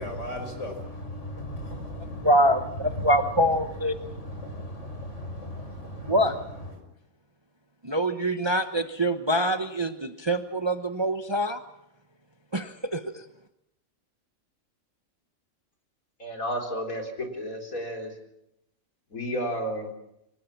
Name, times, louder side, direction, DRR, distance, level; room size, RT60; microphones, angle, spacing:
voice 1, 0.0-2.3 3.0-3.1 4.0-6.2, left 1 dB, 60° left, 5 dB, 5.7 m, -36 dB
voice 2, 2.2-3.9 6.1-6.4 7.8-11.6 12.5-13.2, right 1 dB, 20° right, 8 dB, 0.9 m, -25 dB
voice 3, 16.2-18.1 19.1-19.9, equal, 80° left, 3 dB, 4.3 m, -32 dB
25.0 x 18.5 x 7.3 m, 0.83 s
omnidirectional pair, 1.4 m